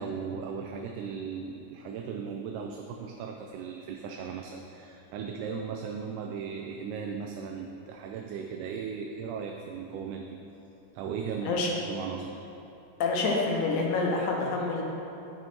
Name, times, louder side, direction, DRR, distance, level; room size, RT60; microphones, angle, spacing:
voice 1, 0.0-10.4 10.9-12.4, right 6 dB, 80° right, 2 dB, 2.0 m, -37 dB
voice 2, 13.0-14.8, left 3 dB, 70° left, 0 dB, 2.2 m, -27 dB
9.4 x 6.3 x 4.3 m, 3.0 s
omnidirectional pair, 3.8 m